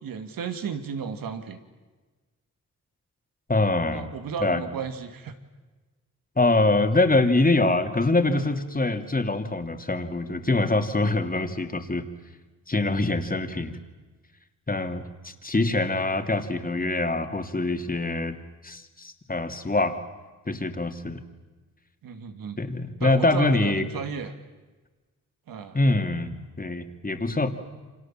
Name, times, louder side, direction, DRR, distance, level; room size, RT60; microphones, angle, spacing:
voice 1, 0.0-1.6 3.9-5.3 22.0-22.6 23.0-24.3 25.5-25.8, right 6 dB, 85° right, 8 dB, 2.3 m, -34 dB
voice 2, 3.5-4.1 4.4-4.6 6.4-12.0 12.7-13.8 14.7-18.4 18.6-20.0 20.5-21.2 22.6-23.9 25.7-27.5, left 2 dB, 25° left, 6 dB, 2.9 m, -24 dB
29.5 x 26.0 x 7.6 m, 1.3 s
cardioid pair, 60°, 33 cm